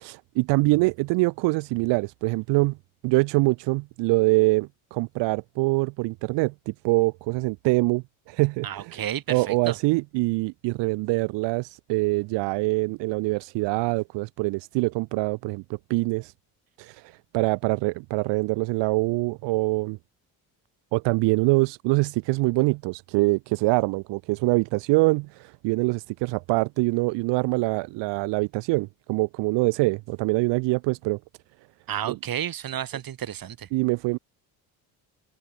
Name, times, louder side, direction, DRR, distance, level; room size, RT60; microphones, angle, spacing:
voice 1, 0.0-2.8 3.0-16.3 16.8-20.0 20.9-31.2 32.1-32.2 33.7-34.2, right 24 dB, 75° right, 0.7 m, -24 dB
voice 2, 8.6-9.8 31.9-33.7, right 10 dB, 55° right, 2.4 m, -31 dB
supercardioid pair, 70°, 43 cm